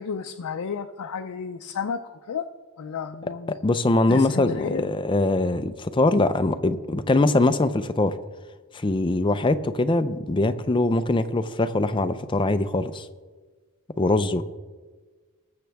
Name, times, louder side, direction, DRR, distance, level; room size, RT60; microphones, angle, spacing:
voice 1, 0.0-2.5 2.8-3.5 4.1-4.9, left 6 dB, 80° left, 6 dB, 0.5 m, -32 dB
voice 2, 3.5-8.1 8.7-13.1 14.0-14.4, left 2 dB, 20° left, 10 dB, 0.4 m, -22 dB
20.0 x 6.9 x 3.4 m, 1.4 s
head